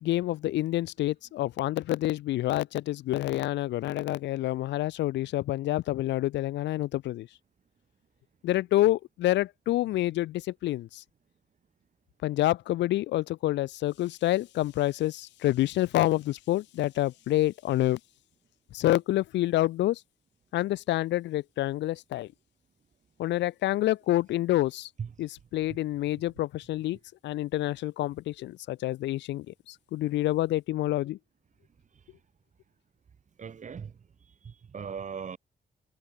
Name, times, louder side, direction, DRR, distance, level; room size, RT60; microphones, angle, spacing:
voice 1, 0.0-7.3 8.4-11.0 12.2-18.0 18.7-20.0 20.5-22.3 23.2-24.9 25.2-27.0 27.2-31.2, left 15 dB, 85° left, 0.4 m, -28 dB
voice 2, 33.4-33.9 34.4-35.4, right 6 dB, 45° right, 0.9 m, -38 dB
cardioid pair, 70°, 18 cm